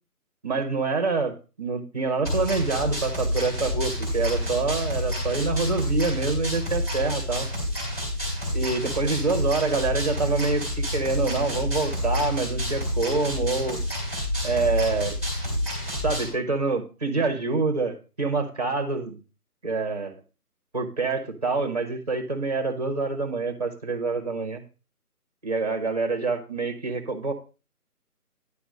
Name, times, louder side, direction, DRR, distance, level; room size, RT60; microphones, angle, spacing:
voice 1, 0.4-7.5 8.5-13.8 14.4-15.2 16.0-19.2 19.6-20.2 20.7-24.6 25.4-27.3, right 3 dB, 25° right, 4 dB, 1.3 m, -26 dB
sound 1, 2.2-16.3, equal, 10° left, 3.3 m, -28 dB
10.5 x 6.0 x 5.0 m, 0.33 s
figure-of-eight pair, 175°, 47 cm